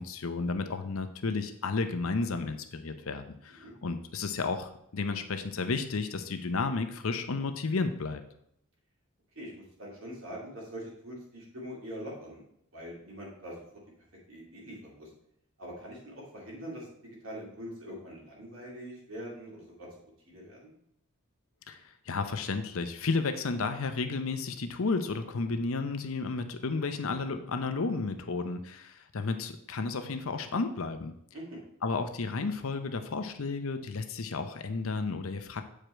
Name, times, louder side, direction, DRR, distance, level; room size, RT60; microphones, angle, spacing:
voice 1, 0.0-8.2 21.7-31.1 31.8-35.6, left 4 dB, 70° left, 8 dB, 0.7 m, -32 dB
voice 2, 9.3-12.4 12.7-13.6 14.3-15.1 15.6-19.9 20.3-20.7 31.3-31.6, equal, 65° right, -3 dB, 2.6 m, -43 dB
7.5 x 5.0 x 4.4 m, 0.74 s
head